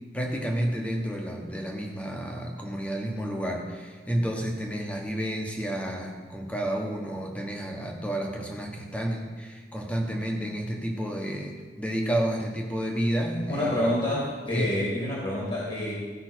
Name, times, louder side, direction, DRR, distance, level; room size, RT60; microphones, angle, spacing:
voice 1, 0.1-13.9 14.5-14.7, right 1 dB, 10° left, 1 dB, 1.2 m, -30 dB
voice 2, 13.5-15.9, left 1 dB, 35° left, -5 dB, 1.8 m, -27 dB
14.5 x 5.6 x 4.5 m, 1.4 s
head